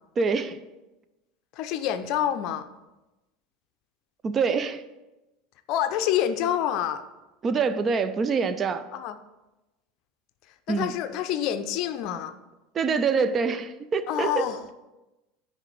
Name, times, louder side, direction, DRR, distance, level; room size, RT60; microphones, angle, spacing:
voice 1, 0.2-0.6 4.2-4.8 7.4-8.9 10.7-10.9 12.7-14.5, right 5 dB, 30° right, 12 dB, 0.5 m, -25 dB
voice 2, 1.5-2.7 5.7-7.0 8.9-9.2 10.7-12.3 14.1-14.6, left 10 dB, 50° left, 10 dB, 0.5 m, -27 dB
9.7 x 3.3 x 6.3 m, 1.0 s
figure-of-eight pair, 75°, 0 cm